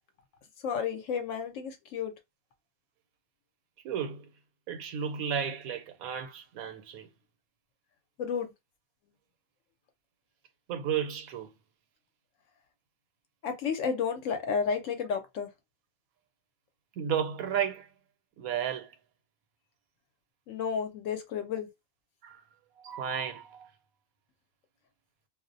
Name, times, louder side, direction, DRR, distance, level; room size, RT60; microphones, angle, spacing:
voice 1, 0.6-2.1 8.2-8.5 13.4-15.5 20.5-21.7, left 6 dB, 70° left, 0.9 m, -32 dB
voice 2, 3.8-4.3 4.7-7.1 10.7-11.5 17.0-17.9 18.4-19.0 22.2-22.4 22.8-23.7, right 8 dB, 90° right, 1.1 m, -33 dB
2.4 x 2.1 x 2.5 m
omnidirectional pair, 1.5 m